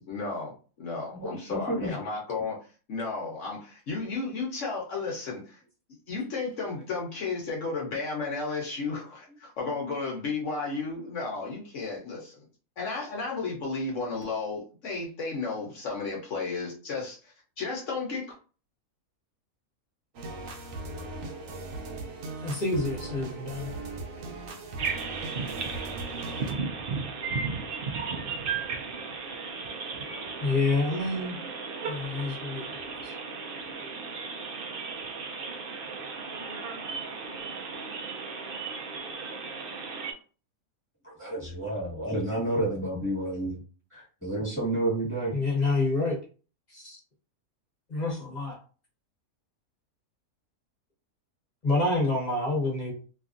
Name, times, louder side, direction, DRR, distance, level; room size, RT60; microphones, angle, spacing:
voice 1, 0.1-5.6 6.1-12.4 12.8-18.3, left 4 dB, 60° left, -2 dB, 1.0 m, -33 dB
voice 2, 1.1-1.9 41.0-43.6 43.9-45.4, right 1 dB, 10° left, -7 dB, 1.4 m, -30 dB
sound 1, 20.1-26.5, right 2 dB, 70° right, 0.9 m, -38 dB
voice 3, 22.4-23.7 30.4-31.4 31.9-32.6 45.3-46.2 46.7-47.0 47.9-48.6 51.6-52.9, left 2 dB, 35° left, -4 dB, 1.0 m, -27 dB
sound 2, 24.8-40.1, right 5 dB, 90° right, 0.4 m, -35 dB
2.8 x 2.5 x 2.4 m, 0.37 s
omnidirectional pair, 1.5 m